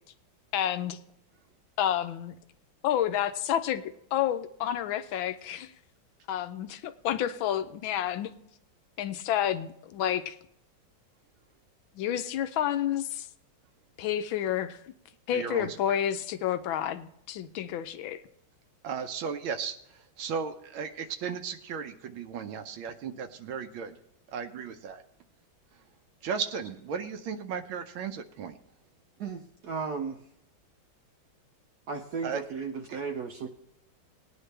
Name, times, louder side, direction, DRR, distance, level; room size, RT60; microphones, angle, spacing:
voice 1, 0.5-1.0 1.8-2.4 2.8-3.8 4.1-5.7 6.3-8.3 9.0-10.4 11.9-13.3 14.0-14.9 15.3-18.2, left 10 dB, 75° left, 10 dB, 1.4 m, -30 dB
voice 2, 15.3-16.0 18.8-23.9 24.3-25.0 26.2-28.6 32.2-32.4, right 6 dB, 80° right, 7 dB, 1.6 m, -35 dB
voice 3, 29.2-30.2 31.9-33.5, right 5 dB, 65° right, 4 dB, 1.1 m, -35 dB
19.0 x 9.6 x 3.3 m, 0.76 s
omnidirectional pair, 2.2 m